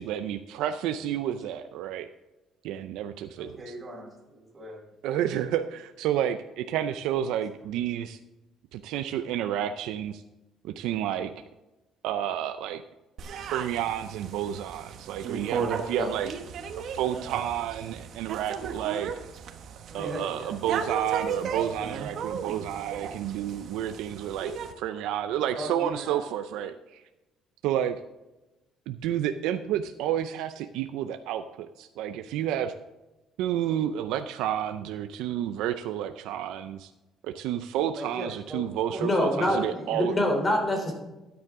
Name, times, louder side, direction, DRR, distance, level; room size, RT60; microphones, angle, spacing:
voice 1, 0.0-2.1 2.6-3.7 5.0-8.2 8.7-10.2 10.6-11.3 12.0-12.8 13.5-16.3 16.8-19.1 19.9-24.5 24.8-27.0 27.6-28.0 28.9-32.7 33.4-36.9 37.2-40.1, right 10 dB, 85° right, 8 dB, 0.5 m, -30 dB
voice 2, 3.4-4.8 19.9-20.6 25.3-26.2 26.5-26.7 37.9-38.6 38.9-39.1 39.4-40.1, right 1 dB, 20° right, -3 dB, 4.5 m, -39 dB
sound 1, 13.2-24.7, right 6 dB, 60° right, 1.2 m, -36 dB
voice 3, 39.0-39.6 39.9-40.9, left 1 dB, 25° left, 2 dB, 3.4 m, -25 dB
13.0 x 9.5 x 3.7 m, 1.0 s
cardioid pair, 120°, 0 cm